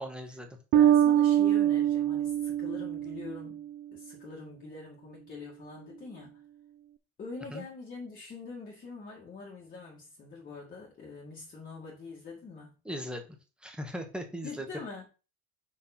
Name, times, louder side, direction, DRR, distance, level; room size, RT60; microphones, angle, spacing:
voice 1, 0.0-0.6 7.5-7.6 12.8-13.2 13.6-14.6, equal, 5° right, 1.2 m, -38 dB
voice 2, 0.7-6.4 7.2-12.7 14.4-15.1, left 4 dB, 25° left, 1.7 m, -44 dB
Bass guitar, 0.7-3.7, right 11 dB, 40° right, 0.4 m, -24 dB
5.7 x 4.7 x 5.7 m
cardioid pair, 165°, 36 cm